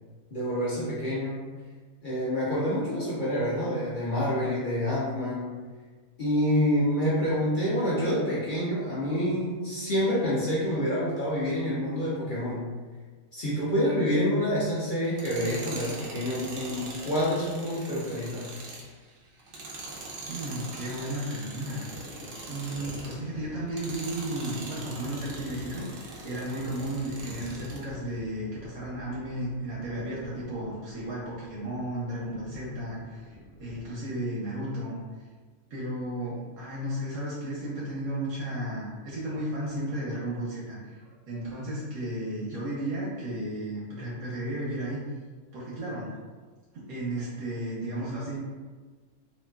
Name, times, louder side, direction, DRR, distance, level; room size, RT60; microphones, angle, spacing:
voice 1, 0.3-1.4 2.0-5.5 6.2-12.8 13.3-18.5, equal, 50° left, -8 dB, 0.6 m, -27 dB
Tools, 15.0-23.2 23.7-27.9, right 2 dB, 65° right, 0.5 m, -42 dB
Thunder, 19.2-20.7 21.0-34.0, left 1 dB, 70° left, 1.0 m, -49 dB
voice 2, 20.3-21.9 22.5-35.0 35.7-45.0 45.5-46.1 46.7-48.4, right 1 dB, 85° right, -7 dB, 1.1 m, -34 dB
2.9 x 2.8 x 2.2 m, 1.4 s
omnidirectional pair, 1.5 m